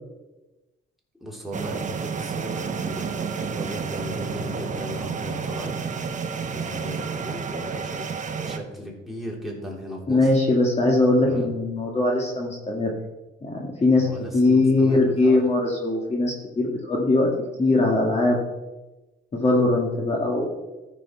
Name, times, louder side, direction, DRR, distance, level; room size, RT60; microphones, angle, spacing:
voice 1, 1.2-5.7 6.4-8.0 8.4-10.3 11.3-11.5 13.9-15.4, equal, ahead, -3 dB, 3.4 m, -37 dB
sound 1, 1.5-8.6, right 5 dB, 40° right, 1.0 m, -30 dB
voice 2, 10.1-12.9 13.4-14.1 14.3-17.3 17.6-18.4 19.3-20.5, left 2 dB, 30° left, -1 dB, 1.9 m, -21 dB
13.5 x 6.4 x 4.7 m, 1.1 s
cardioid pair, 90°, 20 cm